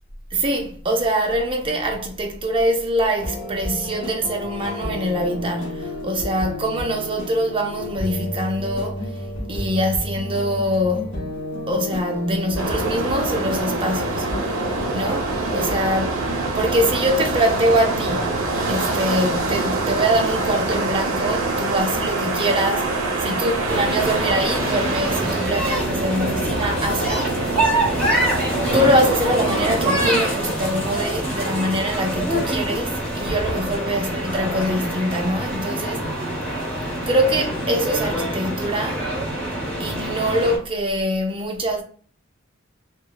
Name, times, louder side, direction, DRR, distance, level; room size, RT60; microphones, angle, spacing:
voice 1, 0.3-9.1 9.5-11.2 11.7-14.4 14.9-16.2 16.6-27.5 28.7-36.1 37.1-39.1 39.8-41.8, equal, 25° right, 0.5 m, -23 dB
sound 1, 3.2-15.8, left 1 dB, 65° left, 0.8 m, -31 dB
sound 2, 12.6-30.1, right 2 dB, 80° right, 0.5 m, -25 dB
sound 3, 23.7-40.6, right 1 dB, 5° left, 1.0 m, -25 dB
2.9 x 2.0 x 2.2 m
head